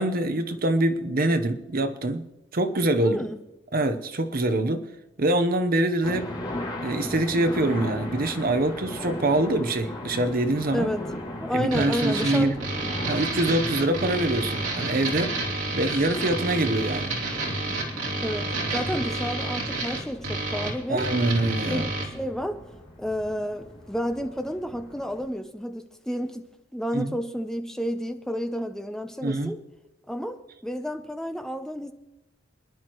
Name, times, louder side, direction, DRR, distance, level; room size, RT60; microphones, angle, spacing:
voice 1, 0.0-2.3 2.5-3.2 3.7-4.9 5.2-6.3 6.8-10.9 11.5-12.6 13.1-15.4 15.7-17.2 18.9-19.0 20.9-21.9 26.9-27.2 29.2-29.5, right 1 dB, 50° right, 0.9 m, -24 dB
voice 2, 3.0-3.4 10.7-11.0 11.4-12.5 18.2-21.1 21.7-22.6 23.0-26.5 26.7-29.6 30.1-31.9, equal, 5° left, 0.6 m, -31 dB
sound 1, 6.0-25.2, left 1 dB, 25° left, 2.7 m, -38 dB
sound 2, 11.7-22.1, right 2 dB, 75° right, 2.9 m, -30 dB
28.5 x 10.5 x 3.1 m
head